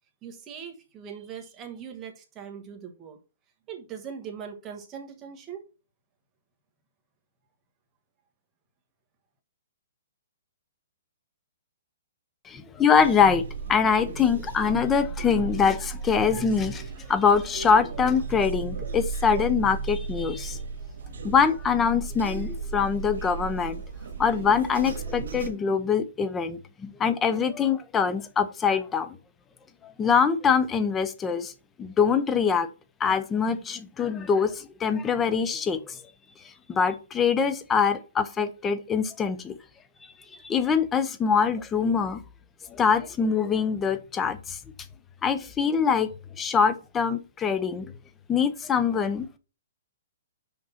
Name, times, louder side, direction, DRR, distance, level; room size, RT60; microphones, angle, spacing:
voice 1, 0.2-3.2 3.7-5.6, right 7 dB, 15° right, 1.5 m, -40 dB
voice 2, 12.5-13.4 13.7-16.8 17.1-20.6 21.2-23.8 24.2-29.2 29.8-31.5 31.8-32.7 33.0-36.0 36.7-39.5 40.4-42.2 42.7-44.6 45.2-46.1 46.4-47.9 48.3-49.4, left 6 dB, 10° left, 0.7 m, -24 dB
sound 1, 13.0-25.5, right 5 dB, 70° right, 2.0 m, -35 dB
6.2 x 5.3 x 5.7 m
hypercardioid pair, 170°, 0 cm